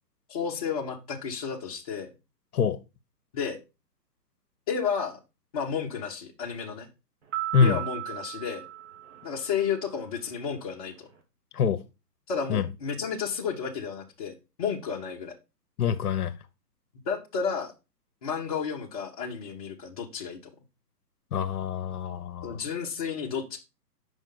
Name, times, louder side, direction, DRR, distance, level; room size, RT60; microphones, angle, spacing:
voice 1, 0.3-2.1 3.3-3.6 4.7-5.2 5.5-6.9 7.6-8.6 9.2-11.1 12.3-15.3 17.0-17.7 18.2-20.4 22.4-23.6, left 6 dB, 25° left, 0.7 m, -32 dB
sound 1, 7.3-9.8, right 14 dB, 45° right, 1.4 m, -36 dB
voice 2, 15.8-16.3 21.3-22.6, left 6 dB, 60° left, 0.8 m, -25 dB
5.4 x 5.3 x 3.8 m
hypercardioid pair, 150°, 50 cm